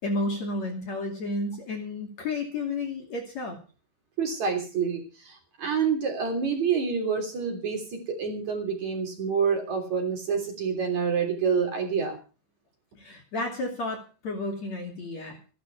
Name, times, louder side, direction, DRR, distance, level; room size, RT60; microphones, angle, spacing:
voice 1, 0.0-3.6 13.0-15.5, left 2 dB, 45° left, 3 dB, 3.3 m, -32 dB
voice 2, 4.2-12.2, right 6 dB, 45° right, 3 dB, 4.3 m, -27 dB
16.0 x 12.0 x 5.9 m, 0.36 s
omnidirectional pair, 5.0 m